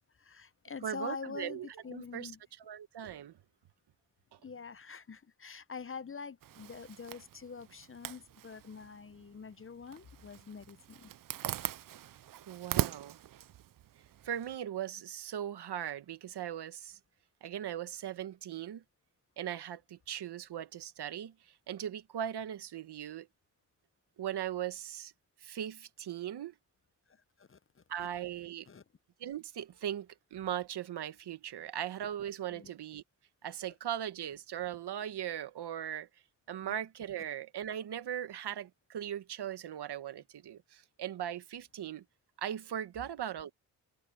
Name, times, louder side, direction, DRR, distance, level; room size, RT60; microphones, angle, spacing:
voice 1, 0.2-2.4 4.4-11.1 27.1-27.8 28.7-28.8 32.5-32.7 36.6-36.7, left 5 dB, 30° left, 0.8 m, -45 dB
voice 2, 0.8-2.3 2.6-3.4 4.3-4.4 12.5-13.2 14.2-17.0 17.4-18.8 19.4-23.3 24.2-25.1 25.4-26.5 27.9-28.7 29.2-33.0 33.4-36.1 36.5-42.0 42.4-43.5, right 10 dB, 75° right, 1.3 m, -39 dB
Zipper (clothing), 6.4-14.6, right 12 dB, 55° right, 0.6 m, -41 dB
supercardioid pair, 45°, 41 cm